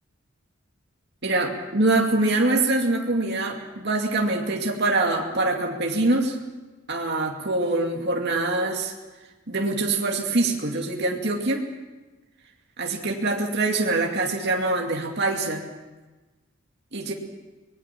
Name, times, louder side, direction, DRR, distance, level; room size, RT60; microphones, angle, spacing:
voice 1, 1.2-6.4 6.9-8.9 9.5-11.6 12.8-15.6 16.9-17.1, right 2 dB, 55° right, 0 dB, 2.5 m, -24 dB
25.0 x 20.0 x 6.1 m, 1.2 s
head